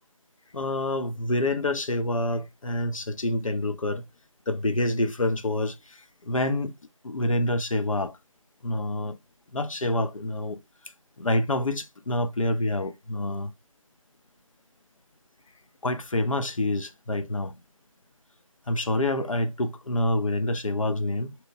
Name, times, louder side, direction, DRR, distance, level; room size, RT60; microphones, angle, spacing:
voice 1, 0.5-4.0 4.5-6.7 7.0-8.2 8.6-9.2 9.5-10.6 11.2-13.5 15.8-17.5 18.7-21.3, left 1 dB, 70° left, 0.5 m, -27 dB
2.9 x 2.0 x 3.4 m
figure-of-eight pair, 165°, 18 cm